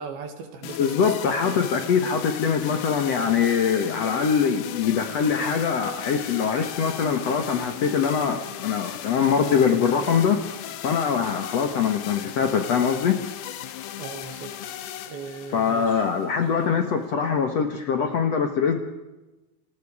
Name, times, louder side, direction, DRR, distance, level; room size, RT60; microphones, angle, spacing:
voice 1, 0.0-1.7 14.0-14.5 15.1-16.1, right 5 dB, 70° right, 6 dB, 3.8 m, -38 dB
sound 1, 0.6-16.7, left 11 dB, 80° left, 3.1 m, -37 dB
voice 2, 0.8-10.4 10.8-13.2 15.5-18.8, left 6 dB, 60° left, 7 dB, 1.8 m, -23 dB
27.5 x 20.0 x 4.9 m, 1.0 s
omnidirectional pair, 4.6 m